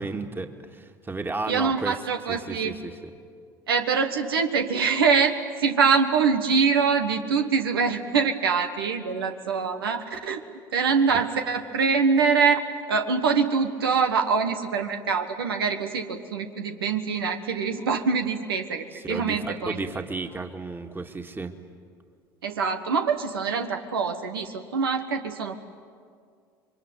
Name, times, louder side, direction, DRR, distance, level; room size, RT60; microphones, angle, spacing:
voice 1, 0.0-2.0 2.3-3.1 18.9-21.6, right 3 dB, 20° right, 5 dB, 2.2 m, -33 dB
voice 2, 1.5-2.7 3.7-10.4 10.7-19.8 22.4-25.6, right 5 dB, 85° right, 6 dB, 1.4 m, -24 dB
27.0 x 23.0 x 9.4 m, 2.2 s
hypercardioid pair, 70°, 12 cm